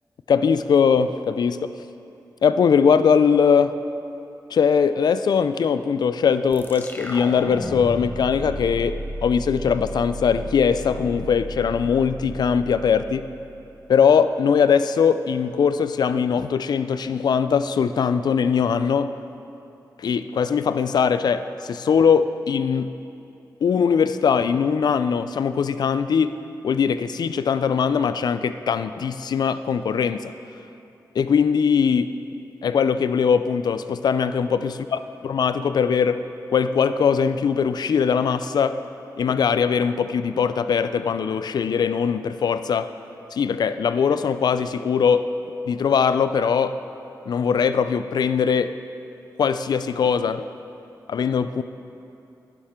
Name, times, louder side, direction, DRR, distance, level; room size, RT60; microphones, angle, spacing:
voice 1, 0.3-1.7 2.4-3.8 4.5-13.3 13.9-19.1 20.0-22.9 23.6-26.4 26.6-30.3 31.2-32.1 32.6-34.8 35.3-36.2 36.5-38.8 39.2-42.9 43.3-45.2 45.7-46.8 47.3-48.7 49.4-50.5 51.1-51.6, left 6 dB, 75° left, 12 dB, 0.4 m, -21 dB
sound 1, 6.5-13.8, equal, 25° left, 1.2 m, -34 dB
11.5 x 10.5 x 3.7 m, 2.7 s
cardioid pair, 60°, 7 cm